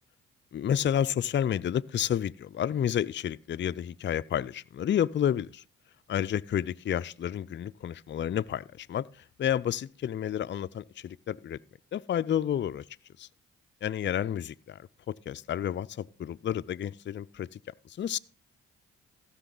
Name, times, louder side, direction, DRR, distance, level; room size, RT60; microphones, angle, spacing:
voice 1, 0.5-5.6 6.1-9.1 9.4-11.6 11.9-12.8 13.2-13.3 13.8-14.8 15.1-17.6 18.0-18.2, left 10 dB, 35° left, 0.4 m, -30 dB
15.5 x 6.1 x 3.9 m
supercardioid pair, 45°, 33 cm